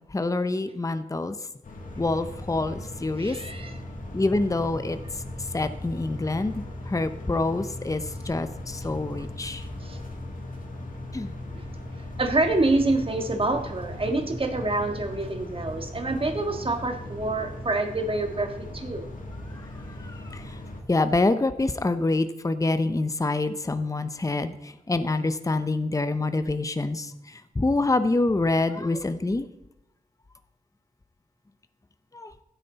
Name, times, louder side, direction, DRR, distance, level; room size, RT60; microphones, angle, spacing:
voice 1, 0.0-1.4 2.0-3.4 4.1-5.0 5.4-9.7 11.1-11.3 19.5-19.7 20.0-20.6 20.9-29.5 32.1-32.3, left 2 dB, 20° left, 10 dB, 0.8 m, -26 dB
sound 1, 1.6-20.8, left 1 dB, 65° left, 2.5 m, -38 dB
voice 2, 3.2-3.8 9.2-9.3 9.8-10.0 11.5-11.7 12.2-19.1, right 2 dB, 40° right, 4 dB, 1.8 m, -27 dB
15.5 x 9.1 x 4.1 m, 0.91 s
wide cardioid pair, 85°, 15 cm